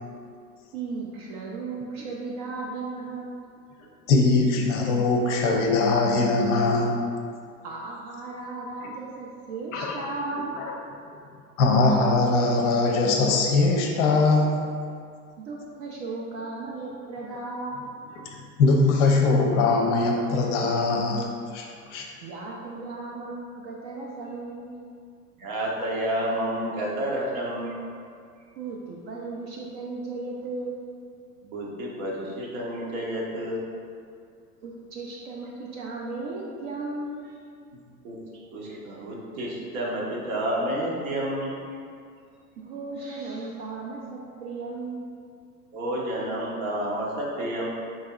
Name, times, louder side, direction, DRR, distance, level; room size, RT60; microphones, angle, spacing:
voice 1, 0.7-3.4 7.6-10.6 15.4-18.0 22.2-24.8 28.6-30.9 34.6-37.4 42.6-45.1, right 3 dB, 40° right, -3 dB, 0.4 m, -35 dB
voice 2, 4.1-7.1 9.7-10.0 10.6-10.7 11.6-14.6 18.6-22.1, left 3 dB, 50° left, 0 dB, 0.6 m, -21 dB
voice 3, 25.4-27.8 31.4-33.6 38.0-38.2 38.5-41.6 45.7-47.7, right 1 dB, 60° right, -3 dB, 0.9 m, -30 dB
4.2 x 2.6 x 2.3 m, 2.2 s
figure-of-eight pair, 90°, 47 cm